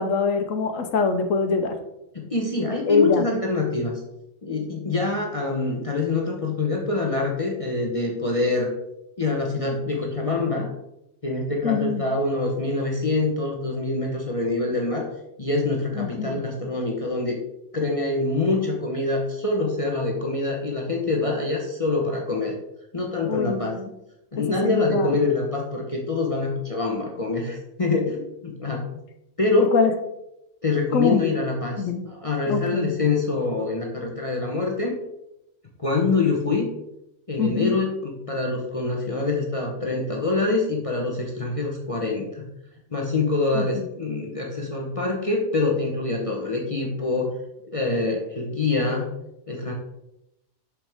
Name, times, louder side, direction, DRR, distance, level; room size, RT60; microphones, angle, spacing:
voice 1, 0.0-1.8 2.9-3.3 11.6-12.0 16.0-16.4 23.3-23.9 24.5-25.1 29.7-29.9 30.9-31.2 31.8-32.1 32.5-32.9 37.4-37.8 43.5-43.8, left 5 dB, 85° left, 6 dB, 1.2 m, -23 dB
voice 2, 2.1-4.0 4.4-8.7 9.2-10.7 11.2-15.1 15.4-17.4 17.7-22.6 22.9-23.8 24.3-29.0 29.4-29.7 30.6-35.0 35.8-36.7 37.3-42.5 42.9-47.3 47.6-49.1 49.5-49.7, left 3 dB, 30° left, -1 dB, 0.9 m, -25 dB
6.3 x 6.2 x 3.5 m, 0.84 s
omnidirectional pair, 1.3 m